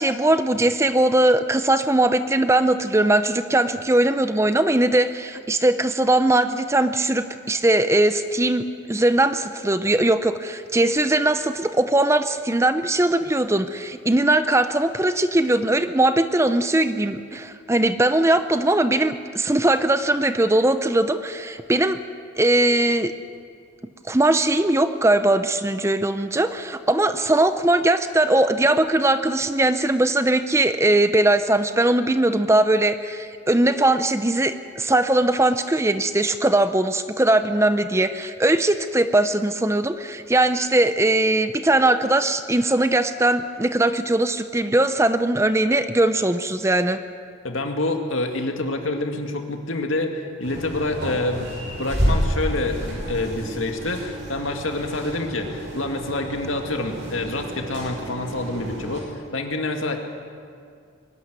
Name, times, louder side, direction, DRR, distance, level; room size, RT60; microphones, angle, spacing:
voice 1, 0.0-22.0 22.4-23.1 24.1-47.0, right 1 dB, 15° right, 11 dB, 0.6 m, -20 dB
voice 2, 47.4-60.0, left 2 dB, 85° left, 4 dB, 2.2 m, -27 dB
sound 1, 50.4-59.0, right 1 dB, 60° right, 6.0 m, -30 dB
22.5 x 12.5 x 9.5 m, 2.3 s
head